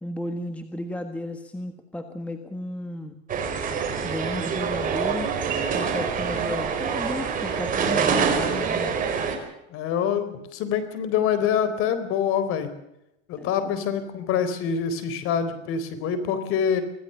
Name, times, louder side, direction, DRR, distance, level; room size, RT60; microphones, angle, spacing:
voice 1, 0.0-3.1 4.0-5.3 5.7-9.0 13.4-13.7, left 1 dB, 5° left, 7 dB, 1.5 m, -34 dB
sound 1, 3.3-9.4, right 6 dB, 25° right, 4.7 m, -26 dB
voice 2, 9.7-12.7 13.3-16.8, left 8 dB, 40° left, 12 dB, 4.2 m, -25 dB
25.5 x 16.5 x 6.9 m, 0.85 s
supercardioid pair, 140°, 35 cm